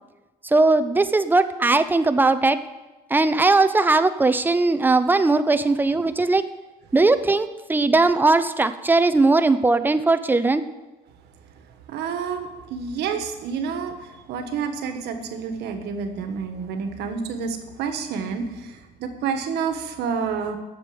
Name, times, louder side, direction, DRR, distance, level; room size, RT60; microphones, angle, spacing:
voice 1, 0.4-2.6 3.1-6.4 6.9-10.6, right 3 dB, 10° right, 11 dB, 0.6 m, -19 dB
voice 2, 11.9-20.6, right 6 dB, 80° right, 7 dB, 1.4 m, -29 dB
8.2 x 6.9 x 8.6 m, 1.1 s
cardioid pair, 110°, 17 cm